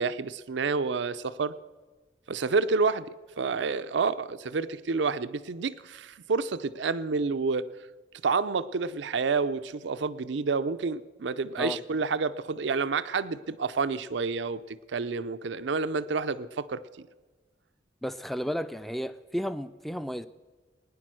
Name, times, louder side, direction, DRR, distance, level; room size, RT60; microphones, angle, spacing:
voice 1, 0.0-1.6 2.3-3.1 3.4-7.7 8.2-16.8, right 4 dB, 80° right, 13 dB, 0.5 m, -29 dB
voice 2, 18.0-20.3, equal, ahead, 12 dB, 0.4 m, -33 dB
20.5 x 10.0 x 6.2 m, 1.3 s
head